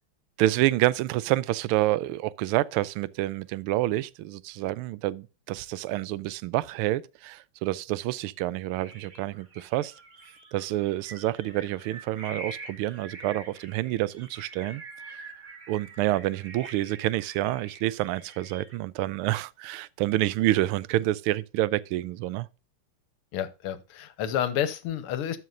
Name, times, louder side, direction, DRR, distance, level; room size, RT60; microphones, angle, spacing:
voice 1, 0.4-9.9 10.5-15.3 15.7-22.5, right 16 dB, 80° right, 1.5 m, -28 dB
sound 1, 8.8-18.8, right 3 dB, 40° right, 2.1 m, -46 dB
voice 2, 23.3-25.4, left 10 dB, 90° left, 1.9 m, -30 dB
13.0 x 6.2 x 2.5 m
omnidirectional pair, 2.4 m